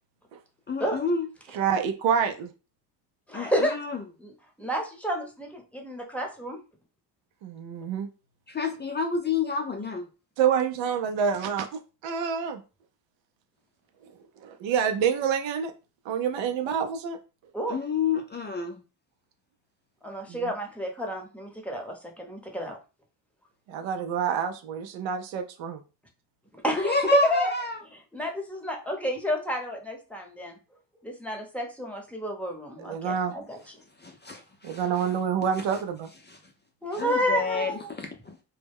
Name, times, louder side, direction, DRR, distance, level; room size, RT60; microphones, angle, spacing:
voice 1, 0.7-1.2 3.3-4.0 8.5-10.1 17.7-18.7 26.8-27.8 34.0-35.1 37.0-37.7 38.0-38.4, left 4 dB, 25° left, 0.5 m, -29 dB
voice 2, 1.5-2.5 7.4-8.1 10.4-11.7 12.0-12.6 14.4-15.7 16.1-17.2 20.3-20.5 23.7-25.8 32.8-33.3 34.6-36.1, right 7 dB, 75° right, 0.6 m, -27 dB
voice 3, 3.3-3.8 4.2-4.3 4.6-6.6 17.5-17.8 20.0-22.8 26.6-27.5 27.9-30.6 31.0-33.6 36.8-37.9, equal, 5° left, 0.8 m, -30 dB
2.1 x 2.1 x 3.4 m
supercardioid pair, 70°, 46 cm